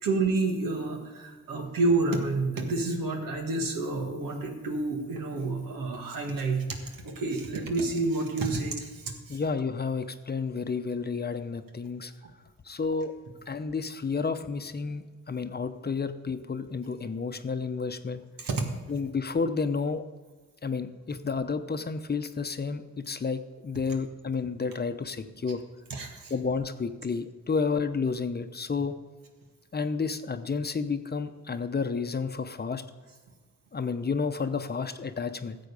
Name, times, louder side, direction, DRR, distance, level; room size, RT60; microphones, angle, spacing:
voice 1, 0.0-6.6 7.0-9.4 18.4-18.7 25.9-26.3, right 3 dB, 85° right, 3 dB, 1.8 m, -29 dB
voice 2, 9.3-12.1 12.6-13.1 13.5-18.2 18.9-20.0 20.6-25.6 26.3-29.0 29.7-32.8 33.7-35.6, left 5 dB, 30° left, 9 dB, 0.8 m, -31 dB
13.5 x 7.7 x 5.4 m, 1.3 s
cardioid pair, 75°, 33 cm